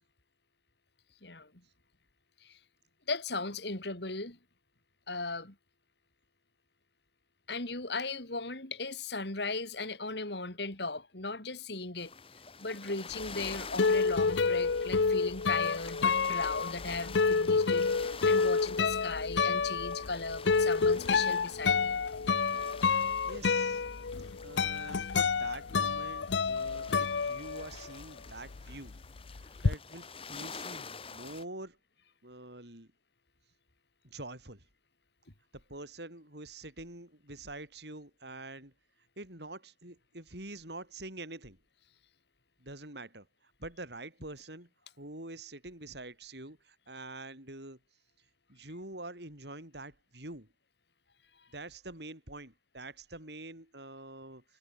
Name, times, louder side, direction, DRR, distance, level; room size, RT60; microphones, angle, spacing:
voice 1, 3.1-4.4 5.1-5.6 7.5-12.1 12.6-22.0, left 3 dB, 70° left, 4.1 m, -37 dB
sound 1, 12.0-31.4, left 5 dB, 30° left, 3.1 m, -48 dB
sound 2, 13.2-28.0 28.3-29.7, left 5 dB, 90° left, 0.7 m, -29 dB
voice 2, 23.3-23.8 24.4-29.0 29.3-31.8 32.2-32.9 34.0-34.6 35.5-38.7 39.2-41.6 42.6-43.3 43.6-44.7 45.0-47.8 48.5-50.5 51.5-54.4, right 2 dB, 70° right, 7.8 m, -46 dB
head